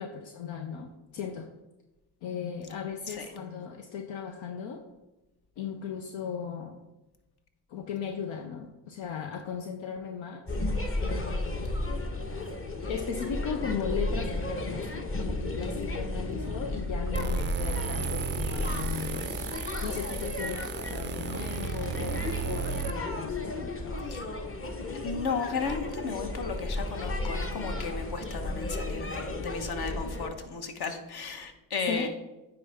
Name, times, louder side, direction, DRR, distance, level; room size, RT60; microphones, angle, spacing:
voice 1, 0.0-1.5 2.2-4.8 5.6-6.8 7.7-10.4 11.0-11.7 12.8-19.3 19.8-24.1 31.9-32.1, left 7 dB, 75° left, 4 dB, 0.7 m, -37 dB
sound 1, 10.5-30.3, left 2 dB, 30° left, 1.0 m, -33 dB
sound 2, 17.1-22.9, right 8 dB, 25° right, 0.3 m, -35 dB
voice 2, 24.9-32.1, left 5 dB, 55° left, 6 dB, 1.1 m, -34 dB
9.6 x 3.9 x 3.5 m, 1.0 s
supercardioid pair, 55°, 46 cm